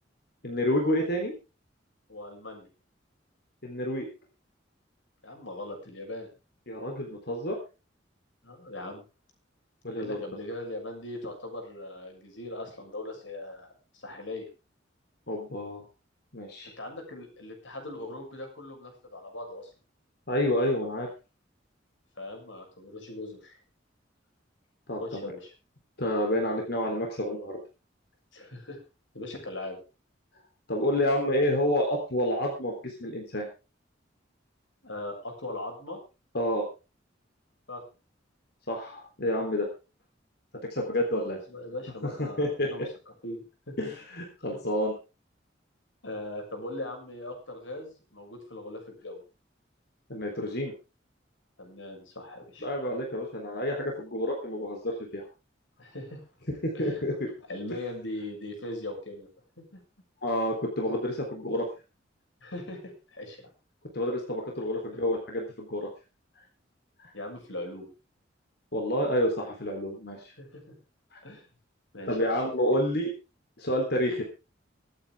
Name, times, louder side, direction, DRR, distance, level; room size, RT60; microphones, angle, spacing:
voice 1, 0.4-1.3 3.6-4.1 6.7-7.6 9.8-10.2 15.3-15.8 16.3-16.7 20.3-21.1 24.9-25.3 26.0-27.6 30.7-33.5 36.3-36.6 38.7-39.7 40.7-41.4 42.2-42.7 43.8-44.9 50.1-50.7 52.6-55.3 56.6-57.3 60.2-61.7 63.9-65.9 67.0-67.1 68.7-70.3 71.1-71.2 72.1-73.1 73.6-74.2, left 1 dB, 60° left, 1 dB, 3.7 m, -29 dB
voice 2, 2.1-2.7 5.2-6.3 8.4-9.0 9.9-14.5 16.8-19.7 22.2-23.6 25.0-25.5 28.3-28.8 29.1-29.8 34.8-36.0 37.7-37.8 41.2-42.8 43.2-43.9 44.5-44.6 46.0-49.2 51.6-52.7 55.8-56.3 56.7-57.0 57.5-59.3 59.6-59.8 62.4-63.5 67.1-67.8 70.4-70.7 71.2-71.5 71.9-72.5, left 1 dB, 90° left, 3 dB, 6.8 m, -40 dB
24.0 x 9.2 x 3.6 m, 0.31 s
head